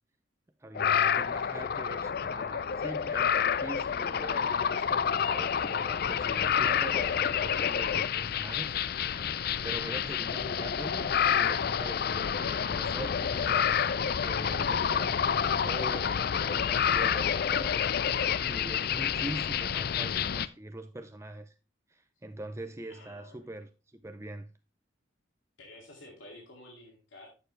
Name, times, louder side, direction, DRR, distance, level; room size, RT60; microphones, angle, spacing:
voice 1, 0.6-8.8 9.0-9.3 9.6-13.7 14.2-16.1 16.4-17.8 18.4-21.5 21.9-24.5, right 1 dB, 15° right, 0.5 m, -43 dB
sound 1, 0.7-20.5, left 8 dB, 50° left, 0.4 m, -28 dB
voice 2, 9.8-10.1 22.9-23.5 25.6-27.3, left 1 dB, 80° left, 2.4 m, -51 dB
11.5 x 6.9 x 3.2 m
head